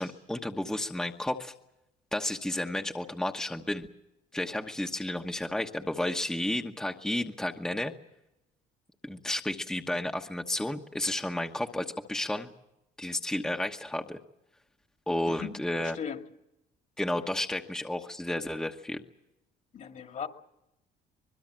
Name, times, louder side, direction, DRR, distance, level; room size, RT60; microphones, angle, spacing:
voice 1, 0.0-1.5 2.1-3.9 4.3-7.9 9.0-12.5 13.0-14.2 15.1-16.0 17.0-19.0, left 1 dB, 5° left, 3 dB, 1.2 m, -32 dB
voice 2, 15.3-16.2 19.7-20.3, left 7 dB, 50° left, 6 dB, 2.2 m, -38 dB
24.5 x 21.0 x 7.6 m, 0.89 s
cardioid pair, 110°, 17 cm